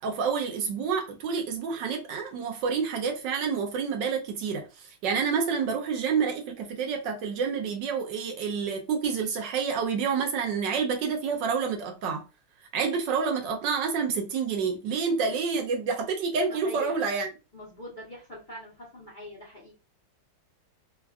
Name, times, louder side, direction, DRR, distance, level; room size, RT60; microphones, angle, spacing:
voice 1, 0.0-12.2 12.7-17.3, right 5 dB, 75° right, 1.2 m, -28 dB
voice 2, 16.5-16.9 17.5-19.7, equal, 40° left, 0.7 m, -42 dB
3.4 x 2.3 x 2.3 m
omnidirectional pair, 2.1 m